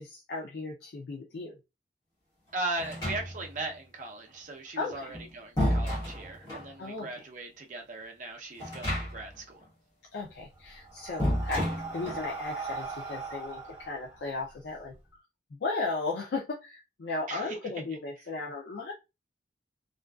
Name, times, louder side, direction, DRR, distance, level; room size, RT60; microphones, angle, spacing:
voice 1, 0.0-1.6 4.8-5.1 6.8-7.3 10.1-14.9 15.5-18.9, left 3 dB, 60° left, 0.4 m, -36 dB
voice 2, 2.5-9.6 17.3-17.6, right 2 dB, 45° right, 0.5 m, -38 dB
sound 1, 2.8-3.6 4.9-6.7 8.6-9.4 9.7-9.8 11.2-12.3, equal, 20° left, 1.1 m, -31 dB
Breathing, 10.2-14.9, right 4 dB, 15° right, 0.8 m, -40 dB
2.4 x 2.3 x 2.2 m
head